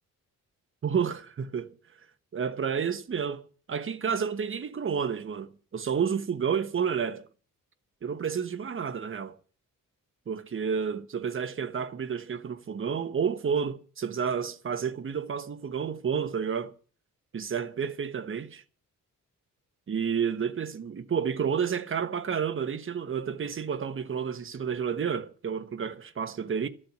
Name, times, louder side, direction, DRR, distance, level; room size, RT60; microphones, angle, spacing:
voice 1, 0.8-1.7 2.3-7.3 8.0-9.4 10.3-16.7 17.3-18.6 19.9-26.7, right 7 dB, 40° right, 1.2 m, -30 dB
13.0 x 7.7 x 9.4 m
cardioid pair, 125°, 32 cm